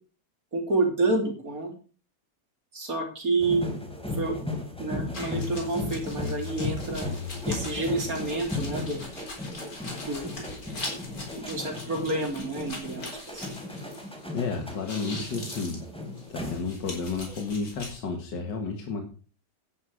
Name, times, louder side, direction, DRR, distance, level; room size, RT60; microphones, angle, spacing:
voice 1, 0.5-1.7 2.7-3.8 4.2-4.4 4.8-7.1 7.5-9.0 10.0-10.3 11.4-13.5, right 2 dB, 50° right, 3 dB, 3.6 m, -29 dB
sound 1, 3.4-17.0 17.3-17.6, left 2 dB, 5° left, 3.1 m, -35 dB
sound 2, 5.1-14.4 14.7-18.0, left 2 dB, 55° left, 4.4 m, -42 dB
voice 2, 14.3-15.9 16.3-19.0, left 4 dB, 80° left, 4 dB, 2.3 m, -32 dB
11.5 x 9.9 x 4.9 m, 0.37 s
omnidirectional pair, 1.9 m